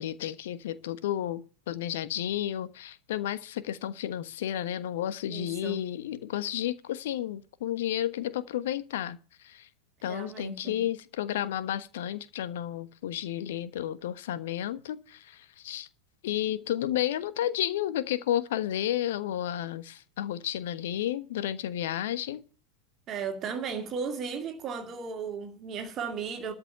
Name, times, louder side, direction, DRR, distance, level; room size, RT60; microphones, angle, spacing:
voice 1, 0.0-9.7 10.0-15.9 16.2-22.4, left 11 dB, 55° left, 1.2 m, -32 dB
voice 2, 5.3-5.9 10.1-10.8 23.1-26.5, right 6 dB, 30° right, 2.2 m, -35 dB
13.0 x 6.0 x 9.0 m
figure-of-eight pair, 90°, 0 cm